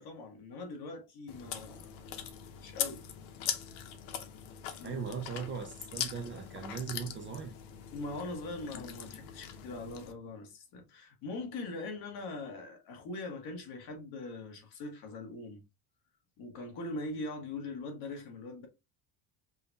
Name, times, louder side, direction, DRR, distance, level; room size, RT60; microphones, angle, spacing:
voice 1, 0.0-2.3 2.6-3.0 4.8-5.0 7.9-15.6 16.4-18.7, left 2 dB, 55° left, 1.4 m, -42 dB
Chewing mastication, 1.3-10.1, left 9 dB, 90° left, 0.9 m, -41 dB
voice 2, 4.8-7.5, right 6 dB, 30° right, 0.4 m, -39 dB
5.3 x 2.2 x 2.7 m
cardioid pair, 175°, 45 cm